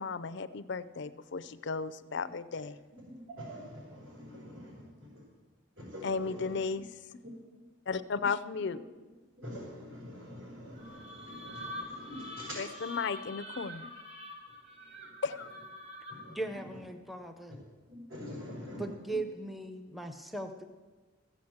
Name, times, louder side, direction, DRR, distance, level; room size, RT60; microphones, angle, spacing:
voice 1, 0.0-2.7 6.0-6.9 7.9-8.8 12.6-13.9 15.2-15.5, left 5 dB, 55° left, 0.5 m, -34 dB
voice 2, 3.3-5.2 5.8-6.8 7.2-7.4 8.6-8.8 9.3-12.8 14.7-15.2 16.1-16.8 17.5-17.6 17.9-19.2, equal, 80° right, 4.9 m, -46 dB
sound 1, 10.8-16.5, left 2 dB, 30° right, 1.2 m, -45 dB
voice 3, 16.3-17.6 18.8-20.6, right 2 dB, ahead, 0.6 m, -38 dB
15.0 x 7.2 x 7.8 m
head